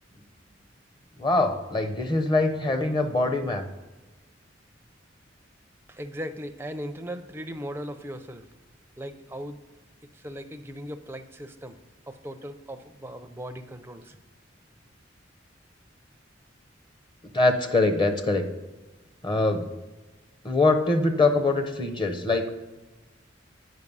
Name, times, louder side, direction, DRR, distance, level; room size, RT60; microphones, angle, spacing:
voice 1, 1.2-3.6 17.3-18.4 19.2-19.7 20.4-22.5, left 2 dB, 25° left, 7 dB, 0.7 m, -23 dB
voice 2, 6.0-8.4 9.0-9.6 10.2-11.7 12.1-14.0, equal, 10° right, 7 dB, 0.4 m, -38 dB
8.3 x 5.2 x 5.3 m, 1.2 s
head